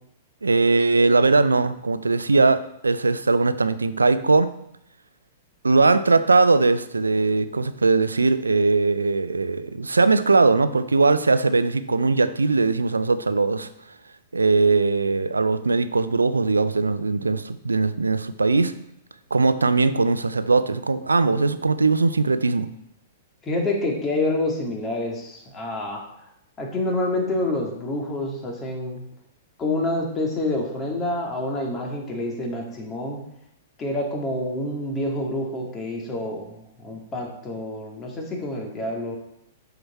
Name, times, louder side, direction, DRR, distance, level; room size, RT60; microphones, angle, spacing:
voice 1, 0.4-4.5 5.6-13.7 14.3-18.7 19.3-22.7, right 3 dB, 85° right, 13 dB, 0.5 m, -20 dB
voice 2, 23.4-26.0 26.6-29.0 29.6-33.2 33.8-39.2, left 2 dB, 25° left, 0 dB, 2.1 m, -27 dB
7.8 x 5.9 x 4.2 m, 0.76 s
figure-of-eight pair, 110°, 0 cm